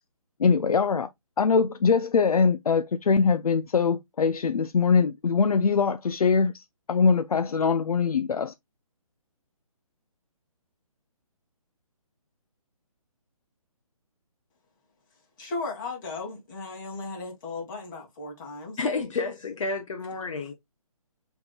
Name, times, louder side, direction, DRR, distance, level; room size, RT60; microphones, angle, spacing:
voice 1, 0.4-1.1 1.4-6.6 6.9-8.5, left 5 dB, 80° left, 0.5 m, -22 dB
voice 2, 15.4-18.8, left 3 dB, 35° left, 2.2 m, -36 dB
voice 3, 18.8-20.5, left 4 dB, 60° left, 1.1 m, -30 dB
5.8 x 3.6 x 2.3 m
hypercardioid pair, 150°, 19 cm